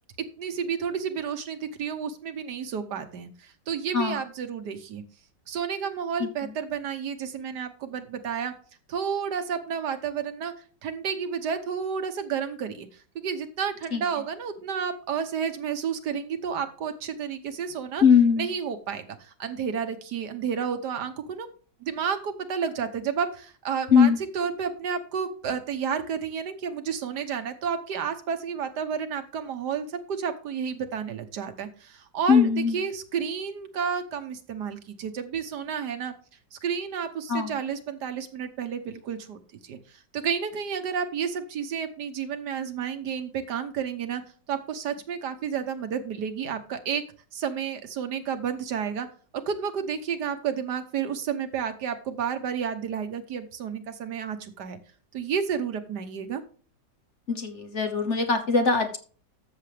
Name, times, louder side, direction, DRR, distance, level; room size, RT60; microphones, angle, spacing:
voice 1, 0.4-5.0 5.5-8.5 8.9-10.5 10.8-18.0 18.4-21.5 21.8-36.1 36.5-44.2 44.5-47.0 47.3-49.1 49.5-54.8 55.1-56.4, right 7 dB, 70° right, 8 dB, 1.6 m, -31 dB
voice 2, 18.0-18.5 23.9-24.2 32.3-32.8 37.3-37.5 57.3-59.0, left 6 dB, 45° left, 6 dB, 1.3 m, -21 dB
13.5 x 7.0 x 3.4 m, 0.41 s
omnidirectional pair, 1.9 m